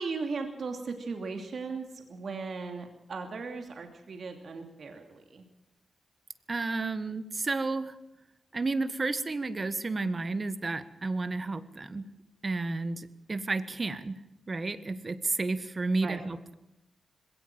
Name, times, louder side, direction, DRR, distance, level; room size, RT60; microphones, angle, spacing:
voice 1, 0.0-5.4 16.0-16.2, right 4 dB, 65° right, 4 dB, 2.8 m, -37 dB
voice 2, 6.5-7.9 8.5-12.1 12.4-14.2 14.5-16.5, right 3 dB, 40° right, 13 dB, 1.5 m, -31 dB
21.0 x 17.5 x 7.8 m, 0.92 s
supercardioid pair, 45°, 0 cm